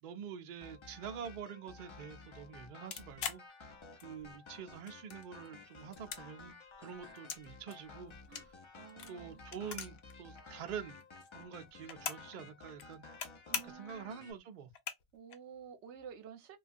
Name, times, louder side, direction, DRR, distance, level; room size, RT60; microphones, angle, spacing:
voice 1, 0.0-3.8 4.0-8.1 8.4-8.5 9.1-11.0 11.3-13.1 13.5-14.7, right 7 dB, 55° right, 0.6 m, -46 dB
sound 1, 0.6-14.3, left 3 dB, 40° left, 0.4 m, -54 dB
sound 2, 2.9-4.3 4.7-5.5 5.8-7.4 7.7-10.1 10.4-10.5 10.7-12.3 12.7-13.3 13.5-13.9 14.4-14.5 14.7-15.4, left 7 dB, 70° left, 0.9 m, -42 dB
voice 2, 8.8-9.4 13.5-14.2 15.1-16.6, right 8 dB, 80° right, 0.9 m, -51 dB
3.0 x 2.3 x 2.5 m
omnidirectional pair, 1.1 m